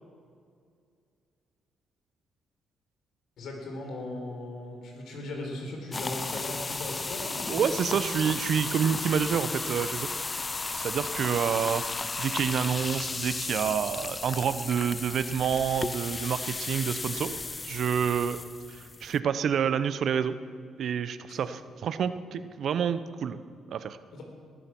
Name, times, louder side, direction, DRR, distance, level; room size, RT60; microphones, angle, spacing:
voice 1, 3.4-7.8 21.3-21.4 24.1-24.2, left 1 dB, 75° left, 2 dB, 4.1 m, -38 dB
sound 1, 5.9-19.2, left 3 dB, 25° left, 0.3 m, -34 dB
voice 2, 7.5-10.1 10.7-11.8 12.2-17.4 17.6-18.4 18.7-20.3 20.8-23.4 23.7-24.0, right 7 dB, 65° right, 12 dB, 0.7 m, -28 dB
20.0 x 11.5 x 6.0 m, 2.2 s
cardioid pair, 90°, 0 cm